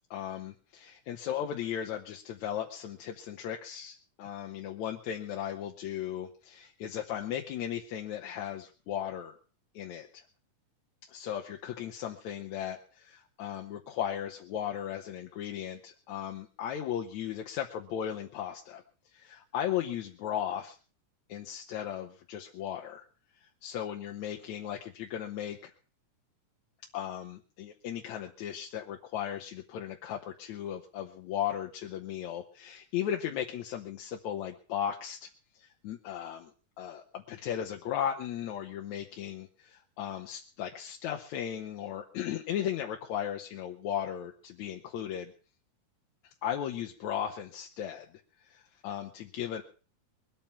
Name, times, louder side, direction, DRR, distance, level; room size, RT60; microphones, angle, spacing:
voice 1, 0.1-9.4 9.7-10.2 11.1-18.8 19.1-20.8 21.3-23.1 23.4-25.7 26.9-35.3 35.6-36.5 36.8-45.3 46.2-48.1 48.4-49.6, left 10 dB, 70° left, 3 dB, 2.2 m, -36 dB
22.0 x 9.0 x 5.9 m, 0.38 s
omnidirectional pair, 3.6 m